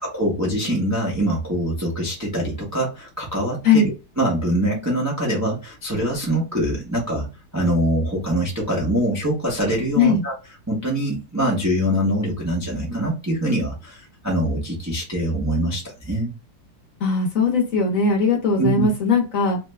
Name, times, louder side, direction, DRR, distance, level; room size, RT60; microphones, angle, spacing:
voice 1, 0.0-7.3 7.5-10.3 10.7-16.3 18.6-18.9, right 1 dB, 20° right, 0.5 m, -23 dB
voice 2, 17.0-19.6, left 4 dB, 55° left, 1.1 m, -19 dB
3.2 x 2.1 x 3.2 m
omnidirectional pair, 1.9 m